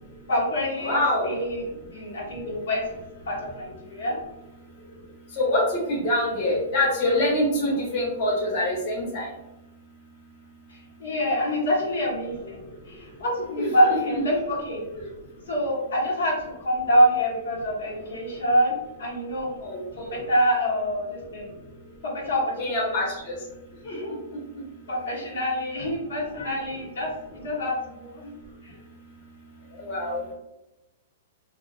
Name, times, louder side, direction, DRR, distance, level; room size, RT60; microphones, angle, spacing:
voice 1, 0.3-1.6 1.9-2.8 3.3-4.2 10.7-14.8 15.5-19.5 20.0-21.5 22.0-23.0 23.8-24.1 24.9-28.3 28.6-28.7, equal, 90° left, -4 dB, 0.9 m, -26 dB
voice 2, 0.8-1.3 5.4-5.6 5.9-9.3 13.6-14.0 19.6-19.8 22.6-23.3 23.9-24.0 29.8-30.3, left 1 dB, 45° left, -4 dB, 0.9 m, -25 dB
2.3 x 2.3 x 2.3 m, 0.97 s
hypercardioid pair, 150°, 0 cm